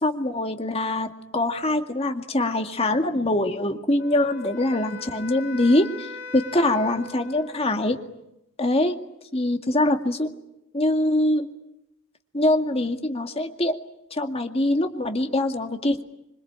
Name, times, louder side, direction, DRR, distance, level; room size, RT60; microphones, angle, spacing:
voice 1, 0.0-8.0 8.6-9.0 9.3-10.3 10.7-11.5 12.3-13.8 14.1-16.0, left 1 dB, 30° left, 5 dB, 2.1 m, -23 dB
Wind instrument woodwind instrument, 4.0-8.0, left 3 dB, 65° left, 4.8 m, -40 dB
26.5 x 23.5 x 8.8 m, 0.87 s
head